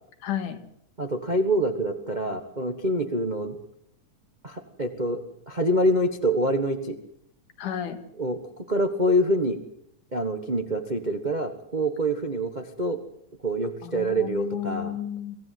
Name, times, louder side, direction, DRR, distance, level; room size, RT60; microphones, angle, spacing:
voice 1, 0.2-0.6 7.6-8.0 13.8-15.4, left 10 dB, 80° left, 8 dB, 3.2 m, -32 dB
voice 2, 1.0-3.6 4.4-7.0 8.2-8.4 8.7-9.6 10.1-13.0 13.4-15.0, right 1 dB, 85° right, 6 dB, 0.4 m, -26 dB
24.0 x 15.5 x 7.9 m, 0.71 s
omnidirectional pair, 3.6 m